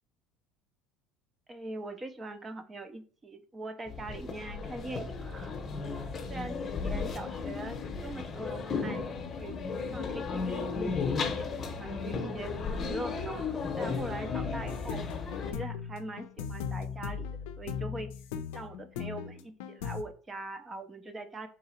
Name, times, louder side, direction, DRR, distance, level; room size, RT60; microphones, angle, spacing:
voice 1, 1.5-5.5 6.3-9.0 9.4-9.5 9.9-10.7 11.1-12.5 12.8-15.0 15.4-17.3 17.6-18.1 18.5-21.5, right 2 dB, 20° right, 9 dB, 0.5 m, -42 dB
sound 1, 3.9-15.5, left 4 dB, 30° left, 0.8 m, -35 dB
sound 2, 14.3-20.0, left 7 dB, 90° left, 0.4 m, -38 dB
3.9 x 2.8 x 4.2 m, 0.42 s
supercardioid pair, 120°, 0 cm